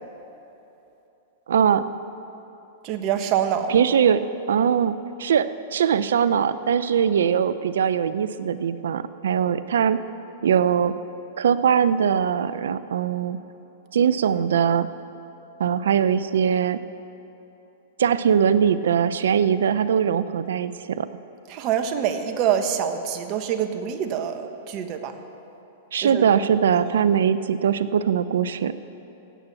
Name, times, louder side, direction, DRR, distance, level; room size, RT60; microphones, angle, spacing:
voice 1, 1.5-1.8 3.7-4.2 4.5-4.9 5.2-10.0 10.4-10.9 11.4-13.4 13.9-14.9 15.6-16.8 18.0-21.1 25.9-28.7, right 8 dB, 80° right, 14 dB, 0.5 m, -21 dB
voice 2, 2.8-3.8 21.5-25.2 26.0-26.2, right 9 dB, 45° right, 7 dB, 1.2 m, -25 dB
17.0 x 8.3 x 6.9 m, 3.0 s
hypercardioid pair, 120°, 0 cm